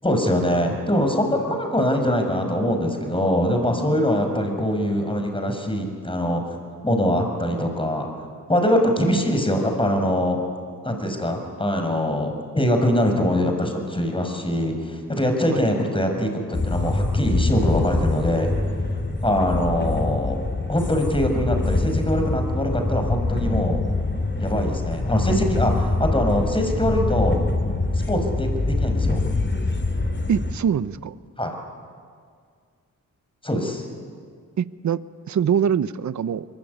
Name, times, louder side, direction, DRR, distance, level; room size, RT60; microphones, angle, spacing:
voice 1, 0.0-6.6 6.8-8.1 8.5-10.4 10.8-18.5 19.2-20.4 20.7-23.8 24.4-27.4 28.1-29.2 31.4-31.5 33.4-33.9, equal, 15° left, 4 dB, 6.4 m, -23 dB
sound 1, 16.5-30.5, left 2 dB, 35° left, 3.2 m, -24 dB
voice 2, 30.3-31.2 34.6-35.0 35.3-36.4, right 8 dB, 55° right, 16 dB, 1.0 m, -23 dB
23.5 x 23.0 x 9.7 m, 2.1 s
cardioid pair, 60°, 34 cm